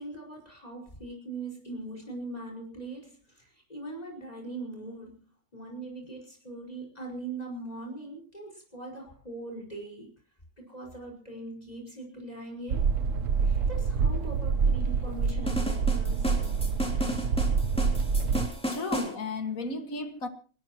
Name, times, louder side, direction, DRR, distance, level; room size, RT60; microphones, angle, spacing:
voice 1, 0.0-5.2 5.5-10.1 10.6-12.8 13.4-16.4, right 2 dB, 30° left, 5.3 m, -41 dB
sound 1, 12.7-18.5, right 5 dB, 70° right, 1.3 m, -26 dB
sound 2, 15.5-19.1, equal, 5° left, 3.3 m, -33 dB
voice 2, 18.7-20.3, left 3 dB, 85° left, 2.4 m, -33 dB
28.5 x 13.0 x 3.0 m
omnidirectional pair, 1.4 m